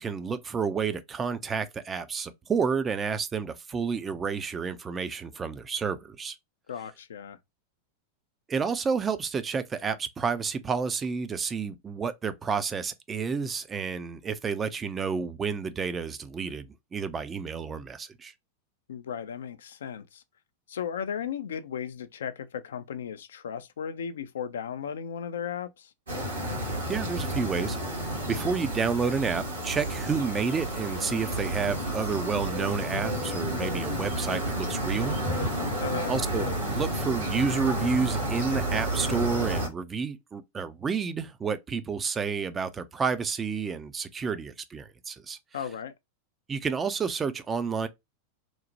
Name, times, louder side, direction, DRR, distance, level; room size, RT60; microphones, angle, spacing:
voice 1, 0.0-6.4 8.5-18.3 26.9-27.8 28.3-35.6 36.1-45.4 46.5-47.9, right 5 dB, 20° right, 0.3 m, -30 dB
voice 2, 6.7-7.4 18.9-20.2 20.7-25.9 35.8-36.1 45.5-45.9, left 8 dB, 65° left, 0.3 m, -35 dB
sound 1, 26.1-39.7, right 1 dB, 75° right, 1.2 m, -31 dB
3.0 x 2.0 x 2.6 m
figure-of-eight pair, 90°, 0 cm